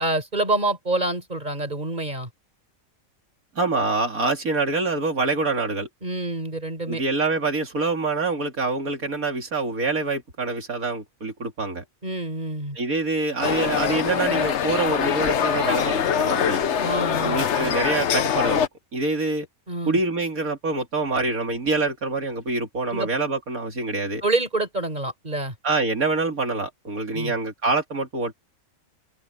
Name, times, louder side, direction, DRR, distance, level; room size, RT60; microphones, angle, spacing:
voice 1, 0.0-2.3 6.0-7.0 12.0-12.8 16.8-17.7 19.7-20.0 22.9-23.1 24.2-25.6 27.1-27.3, right 2 dB, 30° right, 5.3 m, -27 dB
voice 2, 3.5-5.9 6.9-11.8 12.8-16.6 17.2-19.5 19.8-24.2 25.6-28.3, right 3 dB, 85° right, 3.3 m, -25 dB
sound 1, 13.4-18.7, left 8 dB, 60° left, 1.1 m, -23 dB
open air
omnidirectional pair, 1.4 m